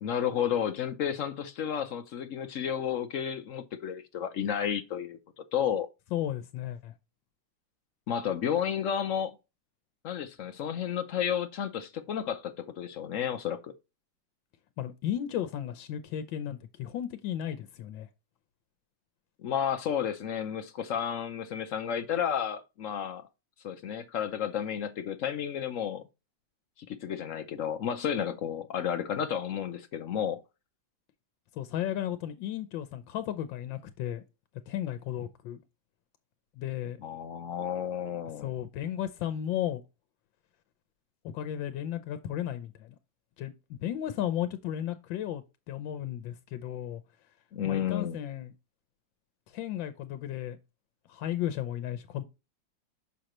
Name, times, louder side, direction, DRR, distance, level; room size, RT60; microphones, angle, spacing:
voice 1, 0.0-5.2 5.5-5.9 8.1-9.4 10.0-13.7 19.4-23.2 23.6-26.0 26.8-30.4 37.0-38.5 47.5-48.2, left 8 dB, 65° left, 0.8 m, -32 dB
voice 2, 6.1-6.9 14.8-18.1 31.5-34.2 34.7-35.6 36.6-37.0 38.4-39.8 41.2-42.9 43.4-47.0 47.6-48.5 49.5-50.6 51.1-52.2, left 11 dB, 85° left, 1.4 m, -34 dB
6.4 x 5.6 x 2.9 m
omnidirectional pair, 2.0 m